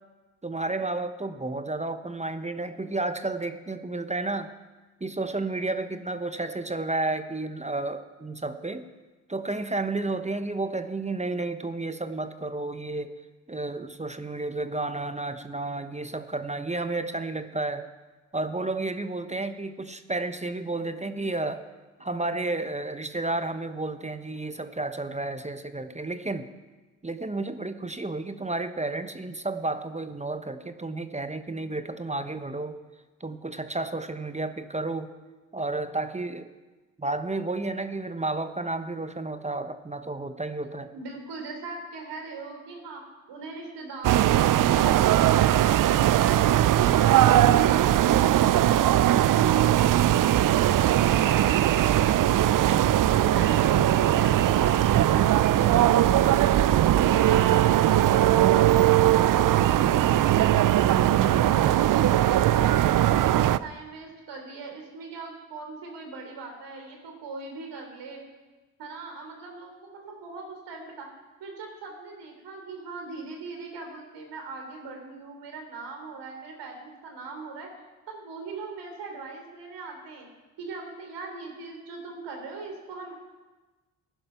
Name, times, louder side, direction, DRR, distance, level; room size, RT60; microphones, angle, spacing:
voice 1, 0.4-4.5 5.0-8.8 9.3-13.2 13.5-17.9 18.3-21.6 22.0-26.5 27.0-32.8 33.2-35.1 35.5-36.5 37.0-40.9, right 2 dB, 15° right, 10 dB, 1.0 m, -31 dB
voice 2, 40.9-43.0 43.3-46.4 53.1-55.7 56.0-58.2 58.5-63.3 63.6-68.2 68.8-71.1 71.4-77.7 78.1-80.3 80.6-83.2, right 4 dB, 70° right, 3 dB, 3.7 m, -40 dB
sound 1, 44.0-63.6, right 12 dB, 50° right, 0.6 m, -20 dB
15.0 x 10.5 x 5.8 m, 1.2 s
hypercardioid pair, 50°, 44 cm